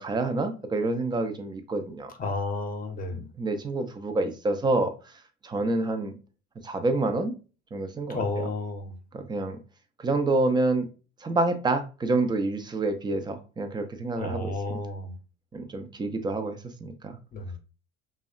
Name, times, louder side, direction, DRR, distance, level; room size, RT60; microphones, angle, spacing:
voice 1, 0.0-2.1 3.1-5.1 5.4-6.1 6.6-7.3 7.7-8.5 9.1-9.6 10.0-10.9 11.2-14.8 15.5-17.2, right 2 dB, 15° right, 0.3 m, -28 dB
voice 2, 2.2-3.2 8.1-8.9 14.2-15.1 17.3-17.5, left 2 dB, 25° left, 0.7 m, -31 dB
2.7 x 2.1 x 2.3 m
supercardioid pair, 95°, 35 cm